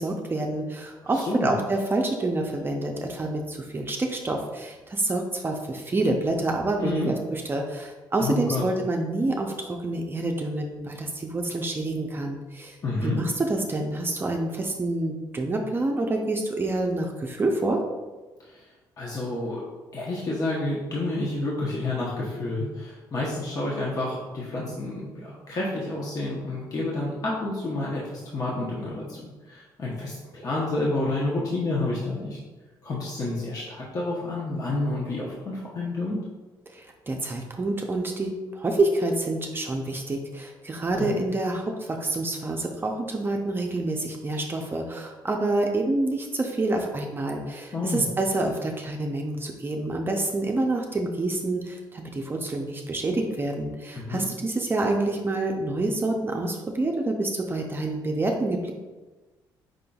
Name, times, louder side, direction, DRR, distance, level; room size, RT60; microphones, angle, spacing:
voice 1, 0.0-12.8 13.0-17.8 36.7-58.7, right 2 dB, 25° right, 2 dB, 0.5 m, -27 dB
voice 2, 1.1-1.5 6.8-7.1 8.2-8.6 12.8-13.2 18.4-18.7 19.0-19.6 19.9-32.4 32.8-36.2 40.9-41.1 47.7-48.0 53.9-54.2, left 2 dB, 45° left, -5 dB, 0.9 m, -29 dB
5.0 x 3.7 x 2.3 m, 1.2 s
cardioid pair, 80°, 8 cm